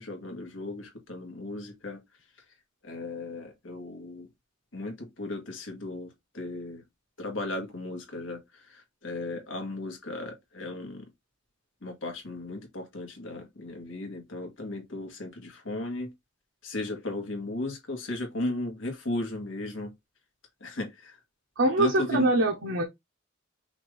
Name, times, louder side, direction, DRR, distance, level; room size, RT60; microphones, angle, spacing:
voice 1, 0.0-2.0 2.8-4.3 4.7-6.8 7.2-11.1 11.8-16.1 16.6-19.9 20.6-21.2 21.8-22.3, left 2 dB, 90° left, 1.6 m, -36 dB
voice 2, 21.6-22.8, right 1 dB, 85° right, 0.9 m, -23 dB
5.8 x 2.6 x 3.2 m
head